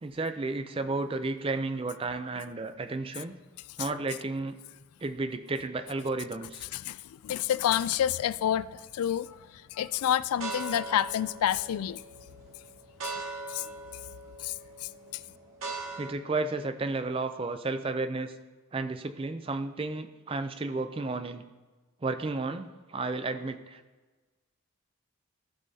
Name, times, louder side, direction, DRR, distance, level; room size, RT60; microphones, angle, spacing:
voice 1, 0.0-3.3 3.8-4.6 5.0-6.6 16.0-18.3 18.7-21.4 22.0-23.8, right 3 dB, 25° right, 10 dB, 0.4 m, -32 dB
voice 2, 7.2-9.3 9.7-12.0 13.5-13.6 14.4-14.5 14.8-14.9, left 10 dB, 85° left, 17 dB, 0.3 m, -28 dB
sound 1, 8.8-9.2 9.8-16.1, right 3 dB, 70° right, 1.8 m, -41 dB
15.0 x 5.4 x 2.7 m, 1.3 s
head